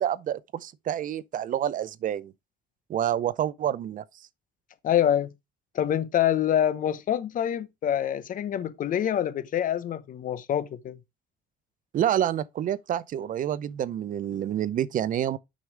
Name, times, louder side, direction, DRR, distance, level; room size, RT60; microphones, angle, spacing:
voice 1, 0.0-2.3 2.9-4.0 11.9-15.4, right 10 dB, 50° right, 0.6 m, -28 dB
voice 2, 4.8-5.3 5.7-11.0, left 10 dB, 55° left, 0.9 m, -26 dB
6.4 x 5.3 x 4.6 m
cardioid pair, 110°, 17 cm